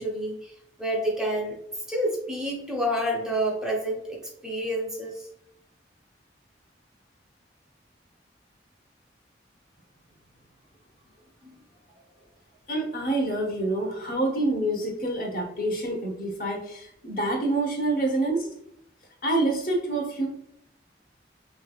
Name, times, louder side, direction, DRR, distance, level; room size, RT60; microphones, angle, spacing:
voice 1, 0.0-1.6 1.9-5.3, right 1 dB, 5° right, -1 dB, 0.5 m, -29 dB
voice 2, 12.7-18.5 19.2-20.3, right 2 dB, 50° left, 1 dB, 0.9 m, -27 dB
3.4 x 3.2 x 2.3 m, 0.76 s
head